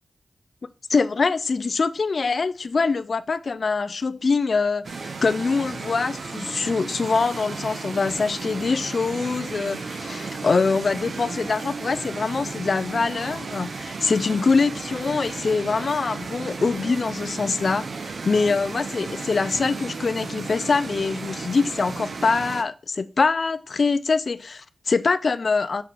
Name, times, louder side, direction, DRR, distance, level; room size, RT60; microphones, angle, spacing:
voice 1, 0.9-25.8, left 4 dB, 60° left, 0.4 m, -24 dB
sound 1, 4.8-22.6, right 4 dB, 70° right, 0.8 m, -34 dB
5.8 x 4.6 x 4.0 m
cardioid pair, 65°, 0 cm